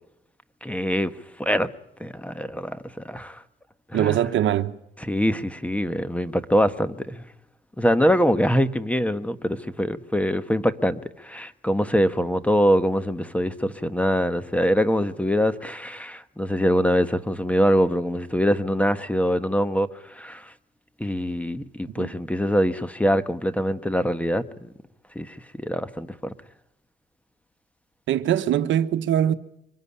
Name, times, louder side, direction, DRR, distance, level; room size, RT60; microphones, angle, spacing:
voice 1, 0.6-1.1 1.4-1.7 2.0-3.4 3.9-4.3 5.0-7.2 7.8-20.5 21.0-24.4 25.1-26.3, equal, 5° left, 1.2 m, -24 dB
voice 2, 3.9-4.8 22.0-22.1 28.1-29.3, right 11 dB, 75° right, 1.0 m, -22 dB
24.5 x 16.0 x 9.8 m
cardioid pair, 90°, 20 cm